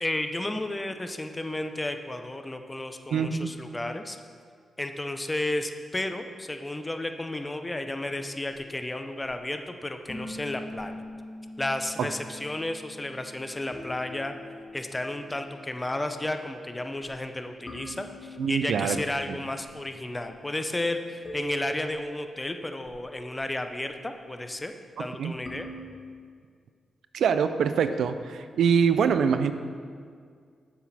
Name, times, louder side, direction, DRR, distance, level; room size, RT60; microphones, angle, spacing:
voice 1, 0.0-4.2 4.8-11.0 11.6-14.4 14.7-25.7, left 1 dB, 20° left, 7 dB, 0.6 m, -33 dB
voice 2, 3.1-3.5 12.0-12.1 18.4-19.0 19.3-19.4 25.0-25.3 27.1-29.5, right 6 dB, 75° right, 10 dB, 0.3 m, -24 dB
sound 1, 8.1-25.9, equal, 40° left, 1.9 m, -45 dB
7.3 x 6.1 x 4.2 m, 2.1 s
supercardioid pair, 45°, 0 cm